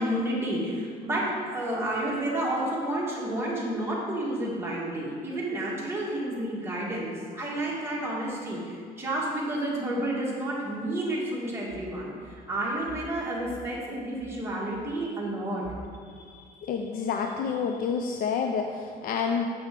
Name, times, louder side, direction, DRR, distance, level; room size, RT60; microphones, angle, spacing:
voice 1, 0.0-15.6, right 1 dB, 15° right, -5 dB, 1.8 m, -30 dB
voice 2, 16.3-19.5, left 6 dB, 60° left, 4 dB, 0.4 m, -29 dB
6.8 x 5.7 x 3.7 m, 2.1 s
cardioid pair, 110°, 17 cm